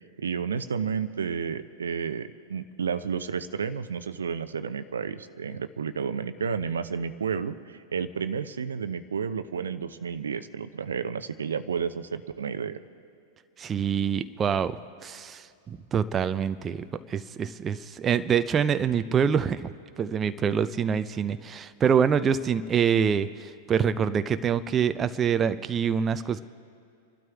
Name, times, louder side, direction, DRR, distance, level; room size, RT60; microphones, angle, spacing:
voice 1, 0.2-12.8, right 6 dB, 75° right, 12 dB, 0.7 m, -31 dB
voice 2, 13.6-19.7 20.0-26.4, right 7 dB, 25° right, 11 dB, 0.5 m, -26 dB
28.5 x 12.0 x 3.5 m, 2.5 s
figure-of-eight pair, 95°, 0 cm